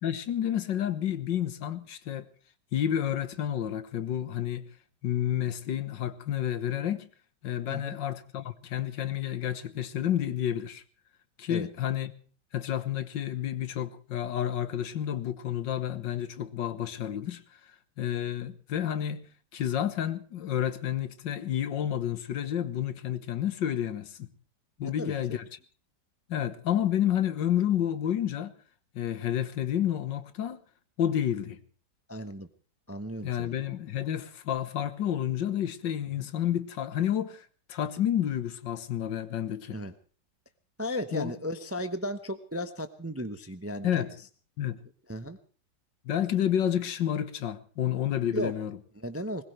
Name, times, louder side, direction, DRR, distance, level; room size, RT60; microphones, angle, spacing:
voice 1, 0.0-2.3 2.7-4.7 5.0-7.0 7.4-10.8 11.4-12.1 12.5-17.4 18.0-19.3 19.5-24.3 24.8-25.4 26.3-28.5 29.0-30.6 31.0-31.6 33.2-39.8 41.1-41.3 43.8-44.2 44.6-44.8 46.1-48.8, left 10 dB, 80° left, 1.8 m, -30 dB
voice 2, 24.8-25.4 32.1-32.5 32.9-33.5 36.2-36.3 39.7-39.9 40.8-44.0 45.1-45.4 48.3-48.5 49.0-49.4, equal, 10° right, 0.6 m, -35 dB
20.5 x 20.5 x 3.2 m
omnidirectional pair, 2.0 m